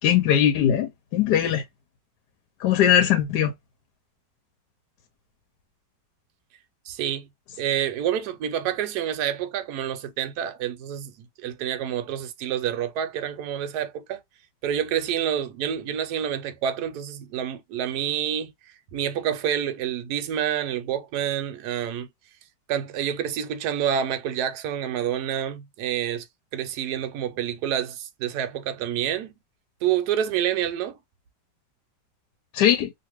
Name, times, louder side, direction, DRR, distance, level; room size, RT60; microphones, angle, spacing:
voice 1, 0.0-1.6 2.6-3.5 32.5-32.9, left 10 dB, 75° left, 1.1 m, -20 dB
voice 2, 6.9-7.3 7.6-11.1 11.4-14.2 14.6-18.5 18.9-22.1 22.7-26.2 26.5-29.3 29.8-31.0, right 9 dB, 70° right, 1.1 m, -28 dB
2.8 x 2.5 x 3.0 m
omnidirectional pair, 1.9 m